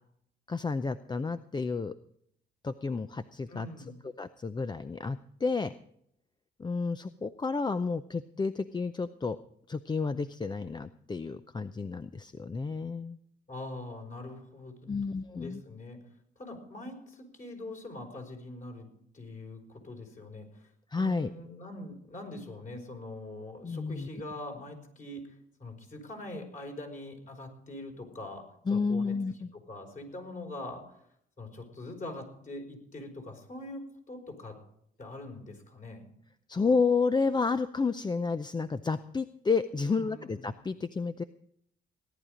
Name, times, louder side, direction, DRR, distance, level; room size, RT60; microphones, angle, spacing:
voice 1, 0.5-1.9 2.6-5.7 6.6-9.4 9.7-13.2 14.9-15.6 20.9-21.3 23.6-24.1 28.7-29.5 36.5-41.2, left 4 dB, 20° left, 11 dB, 0.6 m, -31 dB
voice 2, 3.5-4.0 13.5-14.9 15.4-16.0 16.4-18.9 19.1-20.7 21.0-29.2 29.5-30.8 31.4-34.5 35.0-36.1 39.8-40.5, left 1 dB, 40° left, 2 dB, 5.0 m, -43 dB
17.5 x 11.0 x 5.0 m, 0.69 s
cardioid pair, 90°, 20 cm